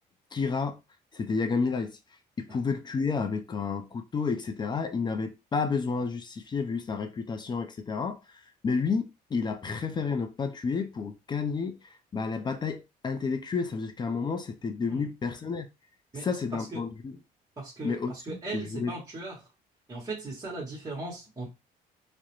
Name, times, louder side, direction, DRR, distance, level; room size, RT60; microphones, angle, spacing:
voice 1, 0.3-0.8 1.1-2.0 2.4-15.7 16.1-17.2 17.8-18.9, left 5 dB, 25° left, 0.4 m, -31 dB
voice 2, 16.1-16.8 17.6-19.5 19.9-21.5, right 2 dB, 20° right, 1.0 m, -38 dB
2.3 x 2.1 x 2.9 m
cardioid pair, 110°, 17 cm